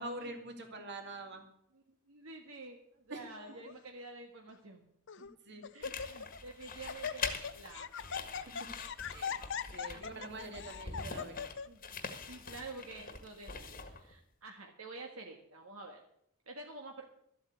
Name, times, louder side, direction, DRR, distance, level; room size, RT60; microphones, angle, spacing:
voice 1, 0.0-1.4 3.1-3.2 5.2-5.7 8.5-8.6 9.1-9.4 9.7-11.3, right 2 dB, 50° right, 4 dB, 2.3 m, -45 dB
voice 2, 1.7-4.9 5.7-7.3 7.5-7.9 8.4-8.5 9.9-10.2 11.6-16.0 16.5-17.1, right 3 dB, 75° right, 2 dB, 1.6 m, -49 dB
Laughter, 3.3-3.7 4.5-4.6 5.1-5.3 5.6-6.4 6.6-11.7, left 6 dB, 55° left, 0.6 m, -40 dB
sound 1, 5.8-14.2, left 5 dB, 40° left, 1.5 m, -44 dB
13.0 x 8.5 x 8.1 m, 0.71 s
head